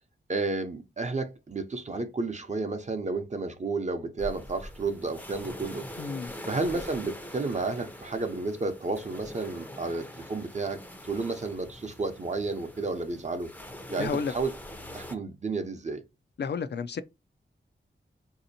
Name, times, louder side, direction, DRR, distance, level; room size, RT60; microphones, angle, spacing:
voice 1, 0.3-5.9 6.5-10.8 11.1-13.5 13.9-14.5 14.9-16.0, right 3 dB, 40° right, 0.7 m, -32 dB
sound 1, 4.2-15.1, left 1 dB, 10° left, 0.5 m, -43 dB
voice 2, 6.0-6.3 14.0-14.3 16.4-17.0, left 5 dB, 60° left, 0.4 m, -31 dB
4.1 x 2.8 x 2.6 m
wide cardioid pair, 110°, 19 cm